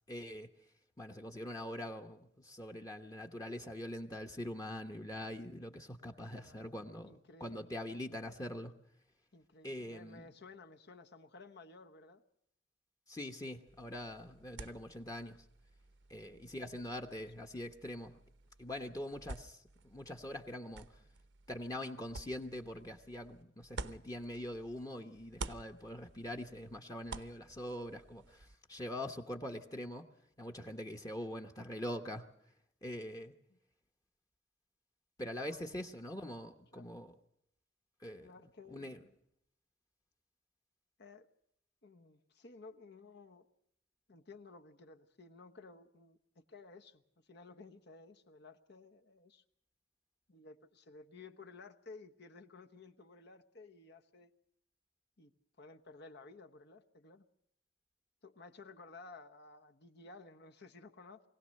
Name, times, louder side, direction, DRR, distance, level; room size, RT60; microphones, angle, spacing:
voice 1, 0.1-0.5 1.0-8.7 9.6-10.3 13.1-15.4 16.1-18.2 18.6-20.9 21.5-30.1 30.4-32.3 32.8-33.3 35.2-37.1 38.0-38.3 38.7-39.0, left 1 dB, 20° left, 1.0 m, -43 dB
voice 2, 6.3-7.7 9.3-12.2 16.3-16.4 16.7-17.2 30.5-30.6 33.5-33.6 35.5-35.7 36.7-37.0 38.2-39.1 41.0-41.3 41.8-43.5 44.1-49.4 50.3-54.3 55.2-55.3 55.6-57.2 58.2-61.2, left 3 dB, 60° left, 1.1 m, -55 dB
sound 1, 13.7-24.8 25.1-28.6, right 3 dB, 65° right, 0.9 m, -51 dB
23.5 x 17.0 x 6.5 m
head